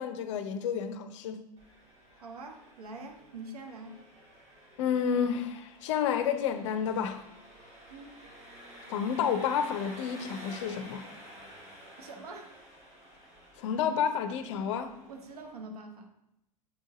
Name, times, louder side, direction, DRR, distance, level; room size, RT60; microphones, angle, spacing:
voice 1, 0.0-1.4 4.8-7.2 8.9-11.0 13.6-14.9, left 7 dB, 50° left, 0.5 m, -30 dB
Engine, 1.6-15.6, equal, 30° right, 2.0 m, -51 dB
voice 2, 2.1-4.0 7.9-8.2 12.0-12.6 15.1-16.1, right 2 dB, 65° right, 0.9 m, -45 dB
7.3 x 4.5 x 2.9 m
figure-of-eight pair, 90°, 21 cm